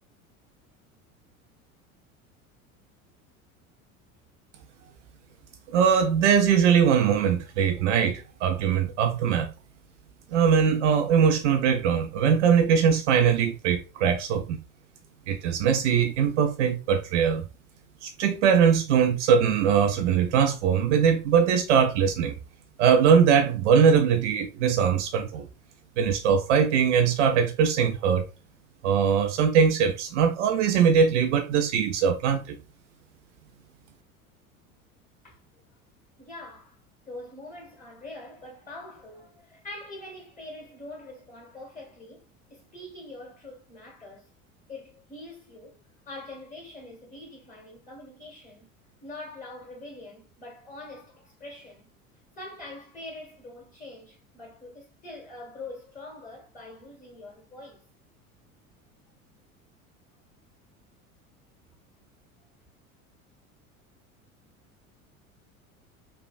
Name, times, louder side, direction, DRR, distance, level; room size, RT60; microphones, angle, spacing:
voice 1, 5.7-9.5 10.3-14.6 15.3-17.4 18.0-22.4 22.8-25.5 26.0-28.3 28.8-32.6, right 7 dB, 55° right, 0.5 m, -21 dB
voice 2, 36.2-36.7 37.0-44.3 44.7-45.7 46.0-48.7 49.0-51.9 52.4-57.9, left 2 dB, 20° left, 1.7 m, -44 dB
3.1 x 2.3 x 2.5 m
figure-of-eight pair, 70°, 43 cm